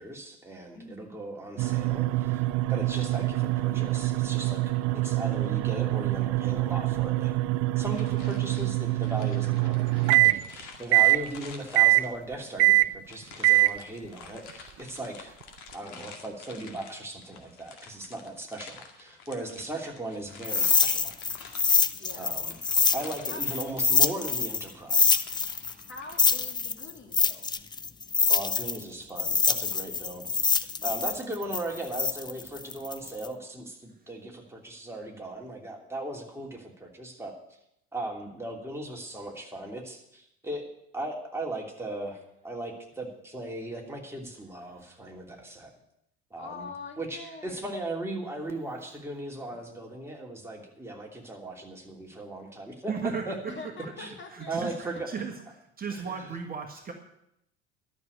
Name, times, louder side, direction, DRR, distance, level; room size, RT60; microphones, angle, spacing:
voice 1, 0.0-2.4 2.7-4.7 5.0-7.4 7.8-15.3 15.7-21.1 22.1-22.6 22.9-25.2 28.3-37.3 37.9-40.7 40.9-45.7 46.3-46.7 47.0-52.9 53.3-53.5 54.0-54.1 54.5-55.1 55.9-56.2, right 2 dB, 5° right, -1 dB, 3.0 m, -38 dB
voice 2, 0.7-1.1 8.2-8.4 21.9-22.3 23.3-23.4 25.9-27.5 46.4-47.8 53.4-55.0, left 3 dB, 30° left, 3 dB, 2.5 m, -44 dB
sound 1, 1.6-10.4 10.9-11.2 11.8-12.1 12.6-12.9 13.4-13.8, right 19 dB, 45° right, 0.5 m, -24 dB
sound 2, 7.9-12.3 13.0-26.6, left 5 dB, 55° left, 2.2 m, -49 dB
sound 3, 20.4-24.6 24.9-28.8 29.2-33.3, left 5 dB, 15° left, 0.5 m, -25 dB
voice 3, 52.9-53.3 54.3-55.3 55.8-56.9, right 6 dB, 25° right, 2 dB, 1.7 m, -35 dB
12.0 x 6.9 x 9.5 m, 0.80 s
figure-of-eight pair, 70°, 35 cm